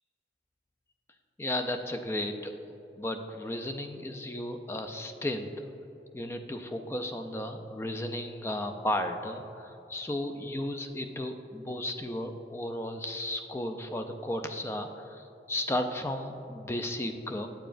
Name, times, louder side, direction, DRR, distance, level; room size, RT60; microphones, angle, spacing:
voice 1, 1.4-2.5 3.0-5.7 6.1-17.5, left 1 dB, 15° left, 6 dB, 0.3 m, -34 dB
8.9 x 7.0 x 2.5 m, 3.0 s
head